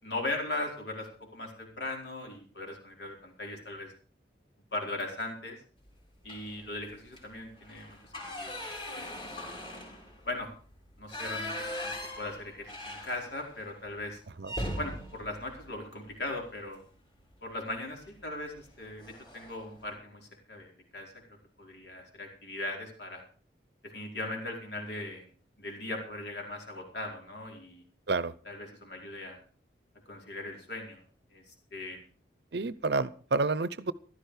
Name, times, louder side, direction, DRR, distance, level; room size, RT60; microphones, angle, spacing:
voice 1, 0.0-1.1 1.3-3.9 4.7-5.6 6.2-9.1 10.2-10.5 11.0-11.5 11.8-11.9 12.2-14.2 14.8-16.8 17.4-21.1 21.6-23.2 23.9-25.2 25.6-27.8 28.5-29.4 30.1-31.0 31.3-32.0, left 2 dB, 65° left, 1 dB, 4.8 m, -39 dB
sound 1, 6.2-6.7 7.1-7.2 7.6-13.6 13.9-14.0 14.4-16.6 17.9-18.2 18.6-18.7 19.0-19.6, left 1 dB, 25° left, 4.2 m, -40 dB
voice 2, 32.5-33.9, right 3 dB, 65° right, 17 dB, 0.7 m, -29 dB
15.0 x 12.5 x 4.9 m, 0.41 s
head